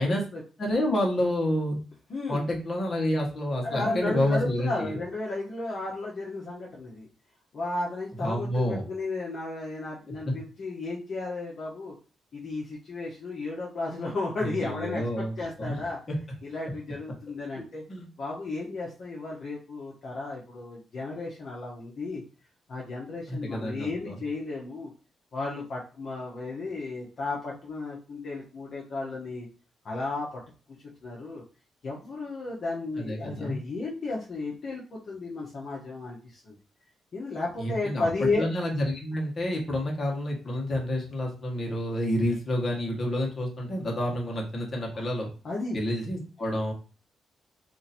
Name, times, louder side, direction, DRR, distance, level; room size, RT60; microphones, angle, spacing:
voice 1, 0.0-0.4 2.1-2.4 3.6-7.1 7.5-11.9 12.3-16.0 16.4-17.8 18.2-22.2 22.7-24.9 25.3-29.5 29.8-30.4 31.0-31.4 31.8-36.5 37.1-38.5 44.9-45.1 45.4-45.8, left 3 dB, 55° left, -4 dB, 0.9 m, -33 dB
voice 2, 0.6-1.8 2.3-5.0 8.2-8.8 10.2-10.3 14.4-15.8 16.1-16.2 17.5-18.1 23.3-24.2 33.0-33.6 37.6-45.3 45.7-46.7, left 1 dB, 35° left, 0 dB, 1.3 m, -29 dB
2.9 x 2.6 x 4.1 m, 0.35 s
cardioid pair, 105°, 0 cm